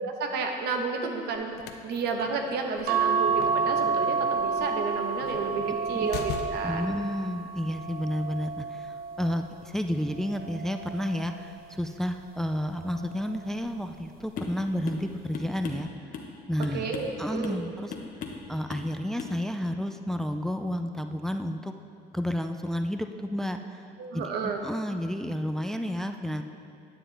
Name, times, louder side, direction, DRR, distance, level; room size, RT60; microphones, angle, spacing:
voice 1, 0.0-1.5 1.8-6.9 16.7-17.6 24.0-24.6, right 4 dB, 80° right, 4 dB, 1.0 m, -31 dB
sound 1, 1.3-6.9, left 7 dB, 75° left, 0.6 m, -42 dB
sound 2, 2.9-9.5 10.1-11.5 12.8-13.2 13.5-13.6, right 5 dB, 65° right, 0.8 m, -30 dB
voice 2, 6.6-15.9 16.5-16.9 17.2-17.9 18.5-21.7 22.1-23.8 24.1-26.4, equal, 5° left, 7 dB, 0.4 m, -31 dB
sound 3, 14.4-14.6 14.9-15.1 15.3-16.3 16.6-17.2 17.4-17.6 17.9-18.4 18.7-18.9 19.2-19.4, left 5 dB, 55° left, 1.1 m, -38 dB
10.0 x 9.0 x 3.3 m, 2.4 s
cardioid pair, 110°, 17 cm